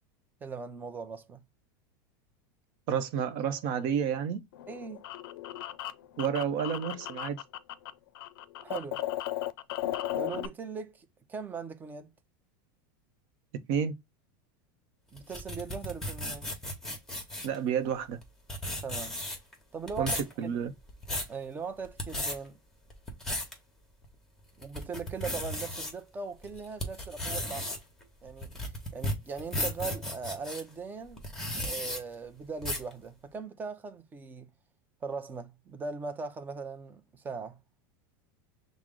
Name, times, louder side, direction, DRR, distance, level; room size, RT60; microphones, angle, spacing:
voice 1, 0.4-1.4 4.7-5.1 8.6-9.0 10.2-12.1 15.1-16.5 18.8-19.2 19.7-20.2 20.4-20.5 21.3-22.6 24.6-27.8 28.2-28.5 28.9-31.2 31.6-34.5 35.0-37.6, right 5 dB, 15° right, 0.5 m, -39 dB
voice 2, 2.9-4.4 6.2-7.4 13.7-13.9 17.4-18.2 20.0-20.7, right 8 dB, 55° right, 0.7 m, -30 dB
sound 1, 4.5-10.5, left 13 dB, 80° left, 0.4 m, -36 dB
sound 2, 15.2-17.6 18.2-18.3 18.5-19.5 19.9-20.3 20.8-21.3 21.8-22.3 22.9-23.5 24.0-24.1 24.6-25.9 26.4-30.6 31.2-32.0 32.6-32.9, left 1 dB, 5° left, 1.0 m, -34 dB
6.0 x 2.0 x 3.6 m
supercardioid pair, 145°, 12 cm